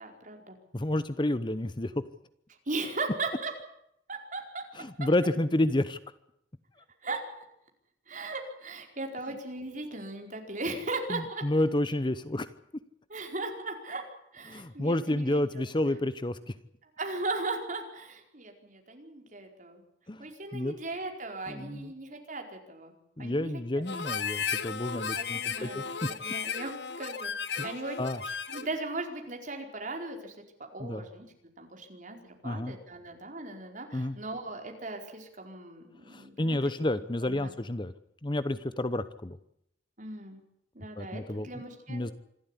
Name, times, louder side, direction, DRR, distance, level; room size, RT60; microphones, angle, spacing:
voice 1, 0.0-0.6 2.7-3.5 4.1-4.6 7.0-7.2 8.1-11.4 13.1-14.0 14.3-15.4 16.9-19.8 20.2-22.9 23.2-23.5 24.1-24.3 25.1-26.7 27.0-28.0 28.2-30.4 30.7-31.3 31.6-36.7 37.3-37.5 40.0-40.4 40.7-42.1, right 2 dB, 45° right, 3 dB, 4.7 m, -38 dB
voice 2, 0.7-2.0 4.8-6.0 11.1-12.5 14.5-16.5 20.1-20.7 21.5-21.9 23.2-26.1 27.6-27.7 28.0-28.2 30.8-31.0 32.4-32.7 33.9-34.2 36.1-37.9 38.2-39.4 41.0-41.6 41.9-42.1, left 1 dB, 25° left, 14 dB, 0.9 m, -30 dB
Harmonica, 23.9-28.8, left 6 dB, 65° left, 1.1 m, -35 dB
26.5 x 13.0 x 10.0 m, 0.75 s
head